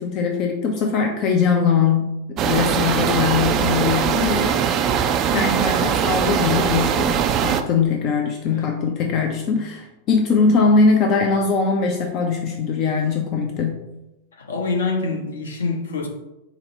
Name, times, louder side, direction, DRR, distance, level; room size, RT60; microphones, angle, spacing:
voice 1, 0.0-4.7 5.3-13.8, left 5 dB, 40° left, 3 dB, 0.4 m, -21 dB
sound 1, 2.4-7.6, right 8 dB, 35° right, 0.3 m, -21 dB
voice 2, 14.3-16.1, left 3 dB, 70° left, 1 dB, 0.8 m, -26 dB
4.9 x 2.1 x 4.2 m, 0.94 s
figure-of-eight pair, 90°, 0 cm